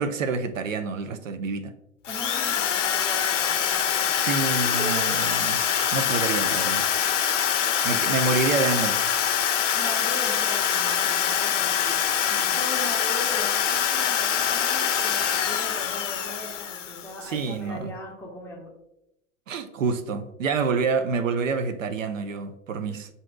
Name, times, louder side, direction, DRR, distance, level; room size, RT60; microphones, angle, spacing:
voice 1, 0.0-1.8 4.2-5.6 5.9-6.9 7.8-9.0 17.2-17.9 19.5-23.1, right 4 dB, 65° right, 0.5 m, -27 dB
Drill, 2.0-17.2, left 8 dB, 60° left, 0.5 m, -24 dB
voice 2, 2.1-4.2 4.6-5.1 9.7-12.0 12.3-18.7 22.9-23.0, left 1 dB, 5° left, 0.5 m, -39 dB
7.3 x 2.6 x 2.3 m
figure-of-eight pair, 95°, 42 cm